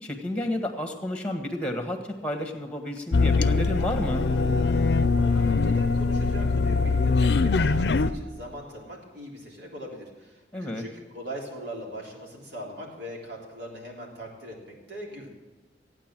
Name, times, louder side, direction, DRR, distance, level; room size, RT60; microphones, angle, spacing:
voice 1, 0.0-4.3 10.5-10.8, left 1 dB, 5° left, 5 dB, 1.7 m, -31 dB
sound 1, 3.1-8.1, left 3 dB, 70° left, 0.5 m, -22 dB
voice 2, 5.1-15.3, equal, 85° right, -2 dB, 3.6 m, -41 dB
15.5 x 9.1 x 7.6 m, 1.2 s
head